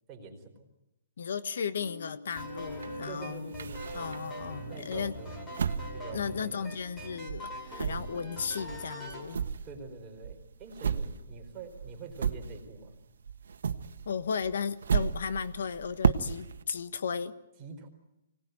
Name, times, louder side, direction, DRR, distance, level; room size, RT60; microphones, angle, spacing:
voice 1, 0.1-0.7 3.0-4.1 4.7-5.3 5.9-6.7 9.6-13.0 17.6-17.9, right 4 dB, 15° right, 0 dB, 4.3 m, -45 dB
voice 2, 1.2-3.5 3.9-5.1 6.1-9.4 14.0-17.3, left 6 dB, 70° left, 13 dB, 1.3 m, -35 dB
sound 1, 1.8-8.2, left 4 dB, 45° left, 4.3 m, -48 dB
sound 2, 2.3-4.5 4.9-7.0 7.3-13.0 13.2-16.6, right 7 dB, 80° right, 1.3 m, -34 dB
sound 3, 2.4-9.3, equal, 10° left, 5.2 m, -42 dB
24.5 x 19.0 x 9.5 m, 0.95 s
hypercardioid pair, 165°, 0 cm